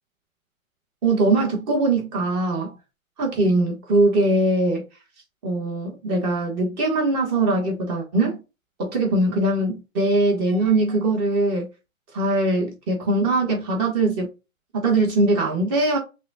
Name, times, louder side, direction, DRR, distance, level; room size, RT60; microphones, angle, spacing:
voice 1, 1.0-2.7 3.2-4.8 5.4-8.4 8.8-11.7 12.1-14.3 14.8-16.0, right 2 dB, 30° right, 1.6 m, -21 dB
5.7 x 2.5 x 2.7 m
figure-of-eight pair, 125°, 42 cm